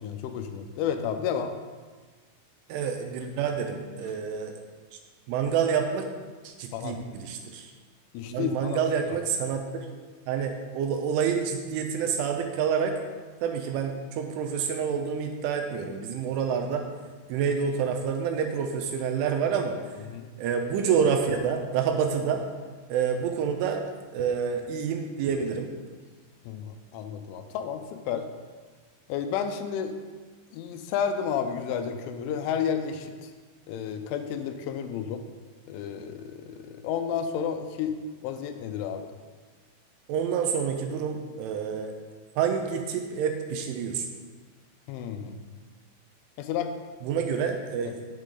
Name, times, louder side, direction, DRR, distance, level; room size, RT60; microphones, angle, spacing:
voice 1, 0.0-1.5 6.7-7.0 8.1-8.8 20.1-20.3 26.5-28.3 29.1-29.9 30.5-33.3 33.7-35.2 35.7-38.0 38.2-39.1 44.9-45.3 46.4-46.7 47.9-48.0, left 7 dB, 80° left, 7 dB, 2.9 m, -31 dB
voice 2, 2.7-4.5 4.9-5.0 5.3-6.1 6.4-7.7 8.3-9.9 10.3-13.0 13.4-16.9 17.3-19.8 20.4-22.4 22.9-25.7 40.1-41.9 42.4-44.1 47.0-48.0, right 7 dB, 85° right, 4 dB, 3.0 m, -28 dB
9.7 x 7.5 x 3.8 m, 1.4 s
omnidirectional pair, 5.8 m